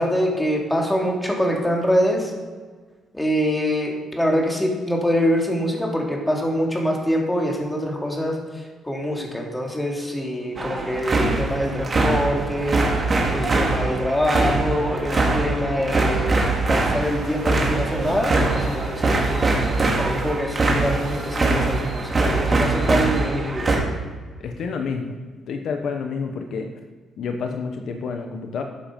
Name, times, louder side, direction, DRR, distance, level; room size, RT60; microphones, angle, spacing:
voice 1, 0.0-2.3 3.1-16.4 16.7-19.4 20.0-23.8, equal, 10° left, -1 dB, 2.9 m, -24 dB
sound 1, 10.6-23.8, right 2 dB, 35° right, 2.4 m, -22 dB
sound 2, 17.0-22.5, right 3 dB, 70° right, 2.5 m, -40 dB
voice 2, 24.4-25.1 25.5-26.7 27.2-28.6, left 5 dB, 65° left, 5 dB, 1.0 m, -29 dB
12.5 x 7.4 x 5.3 m, 1.5 s
cardioid pair, 90°, 0 cm